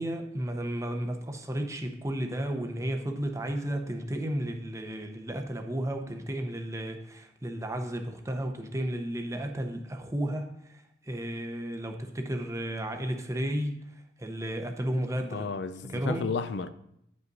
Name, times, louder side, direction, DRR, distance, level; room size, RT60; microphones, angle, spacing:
voice 1, 0.0-15.5 15.9-16.3, right 1 dB, 15° right, 0.7 m, -33 dB
voice 2, 15.3-16.7, left 4 dB, 75° left, 0.5 m, -32 dB
9.6 x 5.4 x 3.9 m
head